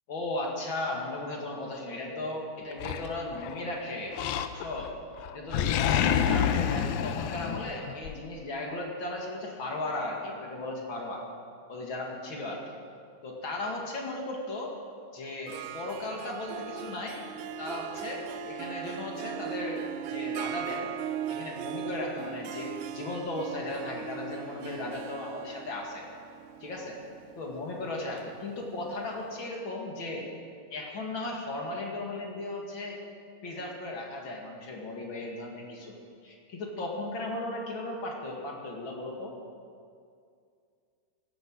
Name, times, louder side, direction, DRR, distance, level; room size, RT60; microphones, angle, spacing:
voice 1, 0.1-4.2 4.5-4.9 5.3-11.2 11.7-12.7 13.2-14.7 15.1-17.2 17.6-20.9 21.3-26.0 26.6-27.0 27.4-30.3 30.7-33.0 33.4-36.0 36.2-39.4, left 2 dB, 40° left, -1 dB, 2.5 m, -36 dB
Animal, 2.8-3.6 4.1-4.9 5.2-8.2, left 9 dB, 90° left, 2.5 m, -28 dB
Harp, 15.5-29.0, right 8 dB, 80° right, 1.8 m, -39 dB
16.0 x 13.0 x 6.3 m, 2.3 s
omnidirectional pair, 4.1 m